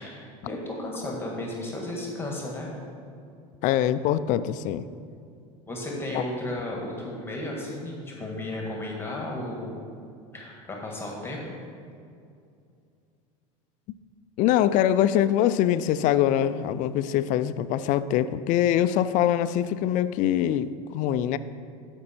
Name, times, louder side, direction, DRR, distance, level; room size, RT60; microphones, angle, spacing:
voice 1, 0.0-2.7 5.7-9.8 10.3-11.5, left 1 dB, 15° left, -2 dB, 1.8 m, -34 dB
voice 2, 3.6-4.9 6.1-6.2 14.4-21.4, left 11 dB, 50° left, 14 dB, 0.4 m, -23 dB
13.5 x 5.3 x 4.4 m, 2.4 s
supercardioid pair, 110°, 17 cm